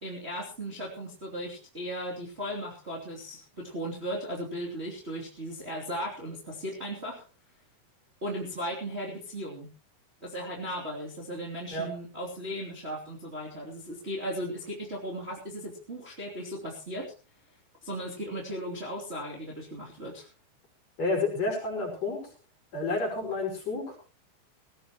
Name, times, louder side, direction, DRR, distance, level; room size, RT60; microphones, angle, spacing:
voice 1, 0.0-7.3 8.2-9.7 10.2-17.1 17.8-20.3, equal, 15° right, -3 dB, 2.7 m, -36 dB
voice 2, 21.0-22.3 22.7-24.0, left 3 dB, 40° left, -1 dB, 6.4 m, -30 dB
19.5 x 16.0 x 3.0 m, 0.33 s
omnidirectional pair, 4.7 m